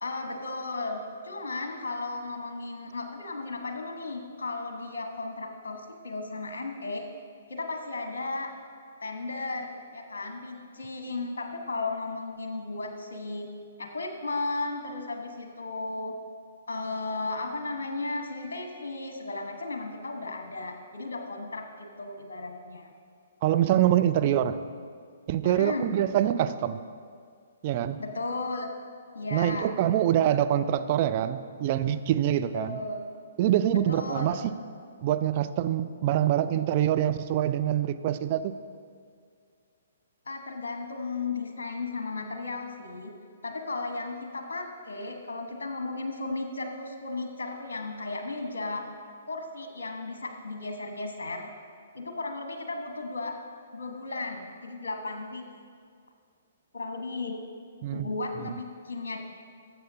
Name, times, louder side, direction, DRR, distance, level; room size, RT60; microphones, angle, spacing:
voice 1, 0.0-7.0 7.5-8.5 9.0-13.5 13.8-16.1 16.7-22.9 25.4-25.9 28.0-28.7 29.1-29.7 32.5-33.1 33.9-34.5 40.3-43.1 43.4-48.8 49.3-51.5 51.9-53.4 53.7-55.4 56.7-57.4 57.9-59.2, left 3 dB, 60° left, 4 dB, 1.3 m, -35 dB
voice 2, 23.4-24.6 25.3-26.8 27.6-28.0 29.3-32.8 33.4-34.5 35.0-38.6 57.8-58.1 58.4-58.6, right 11 dB, 40° right, 10 dB, 0.4 m, -25 dB
19.5 x 7.7 x 2.7 m, 2.1 s
figure-of-eight pair, 125°, 0 cm